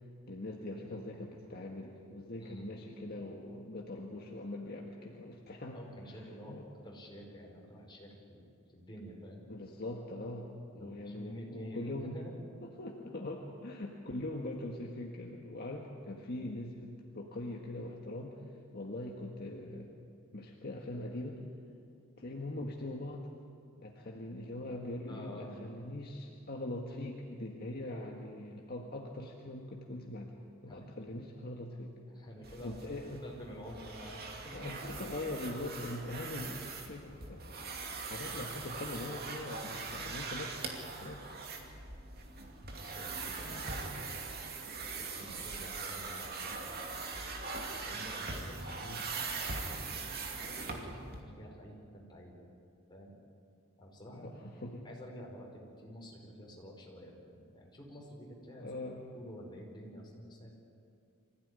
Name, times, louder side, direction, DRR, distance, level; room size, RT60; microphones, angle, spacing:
voice 1, 0.3-5.8 6.5-6.6 9.5-10.5 10.7-12.2 12.6-18.4 18.7-19.9 20.3-21.4 22.2-23.3 23.8-31.9 32.6-33.2 34.5-36.6 36.9-40.5 41.0-41.3 43.4-43.6 43.9-44.3 48.8-49.0 54.1-54.9 58.6-59.1, left 1 dB, 50° left, 0 dB, 1.7 m, -42 dB
voice 2, 5.7-6.5 6.8-9.5 10.8-12.6 25.1-25.8 30.7-30.9 32.1-34.7 42.8-43.5 44.9-47.3 47.7-50.1 50.7-52.5 52.9-53.1 53.8-54.3 54.8-58.7 59.1-60.5, equal, 20° left, -2 dB, 5.2 m, -49 dB
sound 1, 32.4-51.2, right 4 dB, 50° right, 2.6 m, -41 dB
24.5 x 16.0 x 9.7 m, 2.4 s
head